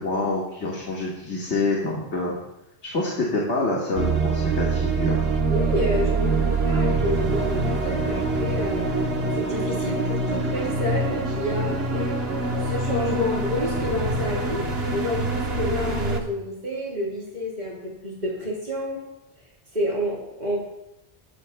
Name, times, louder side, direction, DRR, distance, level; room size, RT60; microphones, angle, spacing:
voice 1, 0.0-2.3 2.8-5.2, left 2 dB, 85° left, -4 dB, 2.2 m, -26 dB
sound 1, 4.0-16.2, right 3 dB, 65° right, 1.5 m, -24 dB
voice 2, 5.5-9.0 9.3-12.3 12.6-14.6 14.9-19.0 19.7-20.6, left 1 dB, 40° right, -4 dB, 3.8 m, -29 dB
16.0 x 13.5 x 2.3 m, 0.88 s
omnidirectional pair, 1.1 m